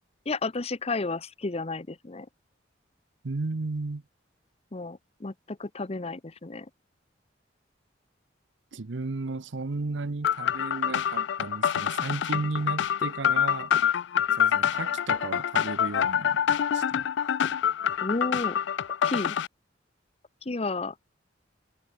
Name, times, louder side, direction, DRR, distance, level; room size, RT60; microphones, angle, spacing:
voice 1, 0.3-2.3 4.7-6.7 18.0-18.6 19.1-19.4 20.4-20.9, left 3 dB, 35° left, 0.8 m, -32 dB
voice 2, 3.2-4.0 8.7-13.7 14.4-16.4 16.7-17.1, right 3 dB, 75° right, 0.8 m, -34 dB
sound 1, 10.2-19.5, left 9 dB, 65° left, 0.3 m, -26 dB
head